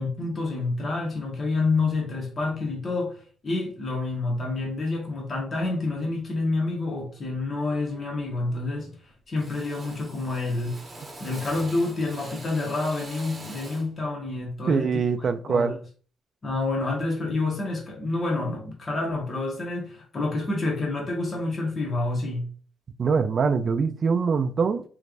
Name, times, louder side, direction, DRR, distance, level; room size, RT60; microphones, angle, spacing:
voice 1, 0.0-8.9 9.3-10.8 11.2-15.0 15.5-15.8 16.4-22.5, left 2 dB, 40° left, 1.3 m, -28 dB
Drill, 7.0-7.3 7.7-8.2 8.4-9.0 9.3-14.0, right 1 dB, 25° right, 1.0 m, -43 dB
voice 2, 14.7-15.8 23.0-24.8, right 5 dB, 45° right, 0.3 m, -23 dB
3.2 x 3.1 x 2.5 m
cardioid pair, 90°, 0 cm